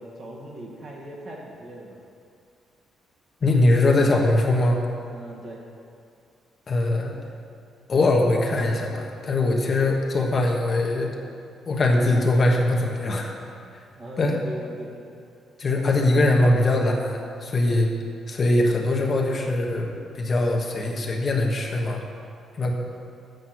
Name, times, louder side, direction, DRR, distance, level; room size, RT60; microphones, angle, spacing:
voice 1, 0.0-2.0 5.1-5.6 14.0-15.1, right 1 dB, 50° right, -2 dB, 1.9 m, -39 dB
voice 2, 3.4-4.8 6.7-7.2 7.9-11.2 11.6-13.3 13.7-13.8 14.2-14.4 15.6-17.9 18.3-22.0 22.5-22.7, left 2 dB, 40° left, 0 dB, 1.3 m, -21 dB
8.0 x 6.5 x 6.0 m, 2.4 s
cardioid pair, 90°, 0 cm